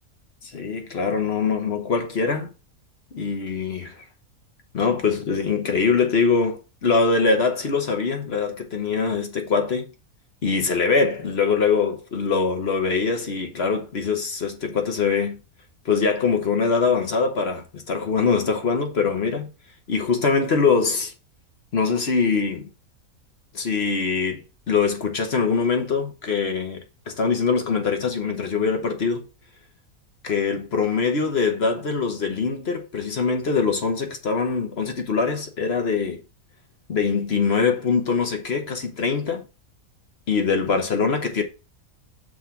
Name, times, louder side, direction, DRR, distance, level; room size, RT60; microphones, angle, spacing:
voice 1, 0.4-2.5 3.1-4.0 4.7-9.9 10.4-15.4 15.8-19.5 19.9-21.1 21.7-22.7 23.5-29.2 30.2-36.2 36.9-39.4 40.3-41.4, left 5 dB, 45° left, 1.2 m, -23 dB
6.0 x 3.4 x 5.7 m
omnidirectional pair, 1.6 m